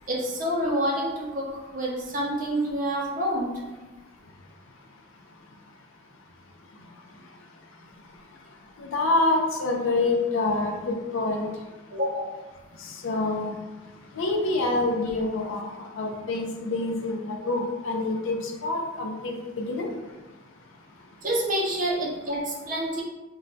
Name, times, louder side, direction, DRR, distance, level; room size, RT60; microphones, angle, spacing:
voice 1, 0.1-3.6 11.9-12.3 21.2-23.0, equal, 40° right, -2 dB, 0.5 m, -28 dB
voice 2, 8.8-11.5 13.0-13.5 14.2-15.7 16.0-19.9, left 2 dB, 60° left, 2 dB, 0.4 m, -26 dB
2.2 x 2.2 x 3.8 m, 1.2 s
head